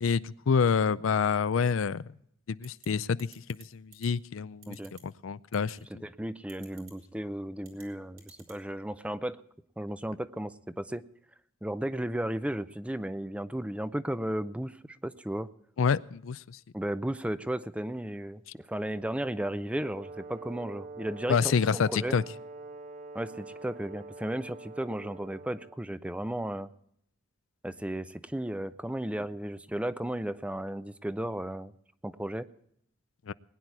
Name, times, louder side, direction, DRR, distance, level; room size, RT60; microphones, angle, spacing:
voice 1, 0.0-2.0 2.5-3.3 3.7-4.8 5.0-5.8 15.8-16.6 21.3-22.2 33.3-33.4, left 6 dB, 75° left, 17 dB, 0.4 m, -27 dB
sound 1, 2.6-2.9 3.2-3.6 3.9-4.1 4.6-5.0 5.5-5.7 6.5-6.9 7.6-7.8 8.2-8.6, right 8 dB, 80° right, 3.2 m, -52 dB
voice 2, 5.9-9.4 9.8-11.0 11.6-15.5 16.7-22.2 23.1-26.7 27.6-31.7 32.0-32.5, right 1 dB, 5° right, 14 dB, 0.5 m, -34 dB
Brass instrument, 19.8-25.8, right 3 dB, 40° right, 0.7 m, -45 dB
20.5 x 9.9 x 4.6 m, 0.71 s
head